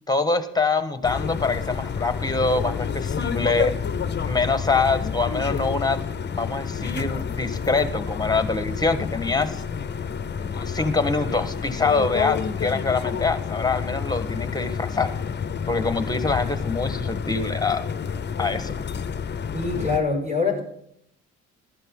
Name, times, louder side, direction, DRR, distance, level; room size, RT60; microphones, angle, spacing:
voice 1, 0.1-3.7 4.2-6.0 6.4-9.6 10.4-15.1 15.7-17.9 18.4-18.7, left 3 dB, 15° left, 11 dB, 1.4 m, -24 dB
sound 1, 1.0-20.0, left 7 dB, 35° left, 0.7 m, -29 dB
voice 2, 19.5-20.6, left 4 dB, 20° right, 1 dB, 5.2 m, -24 dB
14.5 x 12.0 x 3.8 m, 0.70 s
cardioid pair, 90°, 30 cm